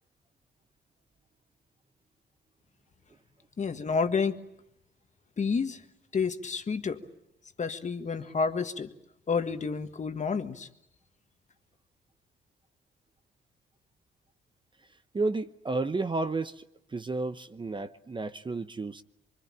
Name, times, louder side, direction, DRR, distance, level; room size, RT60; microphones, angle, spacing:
voice 1, 3.6-4.4 5.4-5.8 6.1-7.0 7.6-8.9 9.3-10.7, left 5 dB, 35° left, 8 dB, 1.7 m, -29 dB
voice 2, 15.1-16.6 16.9-19.0, right 3 dB, 25° right, 11 dB, 0.9 m, -32 dB
24.5 x 24.5 x 8.8 m, 0.85 s
cardioid pair, 90°, 20 cm